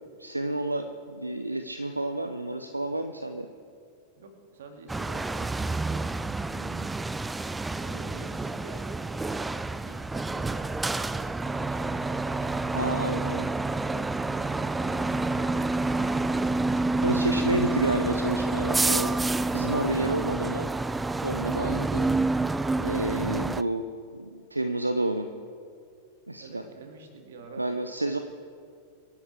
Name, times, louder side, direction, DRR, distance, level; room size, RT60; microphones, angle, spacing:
voice 1, 0.2-3.5 12.7-13.5 16.7-19.1 19.5-20.7 21.2-22.3 22.8-23.8 24.1-25.3 26.3-26.6 27.6-28.2, right 1 dB, 85° right, 8 dB, 0.5 m, -30 dB
voice 2, 4.2-6.2 7.8-8.9 9.2-10.7 11.0-12.1 26.4-27.7, right 3 dB, 60° right, 4 dB, 2.0 m, -48 dB
sound 1, 4.9-23.6, right 2 dB, 10° right, 0.3 m, -28 dB
sound 2, 11.4-16.9, left 1 dB, 65° left, 2.6 m, -50 dB
25.5 x 10.5 x 3.4 m, 2.3 s
figure-of-eight pair, 90°, 0 cm